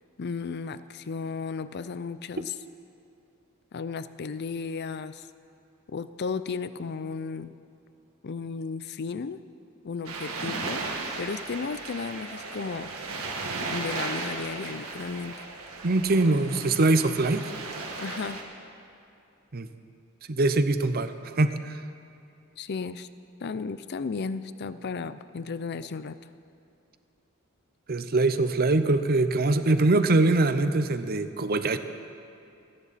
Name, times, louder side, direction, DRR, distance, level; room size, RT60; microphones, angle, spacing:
voice 1, 0.2-2.5 3.7-5.3 5.9-7.5 8.2-9.4 9.8-10.9 11.2-12.9 13.7-15.5 18.0-18.4 22.6-23.1 23.4-26.2, left 5 dB, 50° left, 14 dB, 0.5 m, -34 dB
sound 1, 10.0-18.4, right 3 dB, 80° right, 1.9 m, -36 dB
voice 2, 15.8-17.5 19.5-19.7 20.3-21.8 27.9-31.8, right 2 dB, 45° right, 10 dB, 0.7 m, -23 dB
28.0 x 10.0 x 4.1 m, 2.6 s
head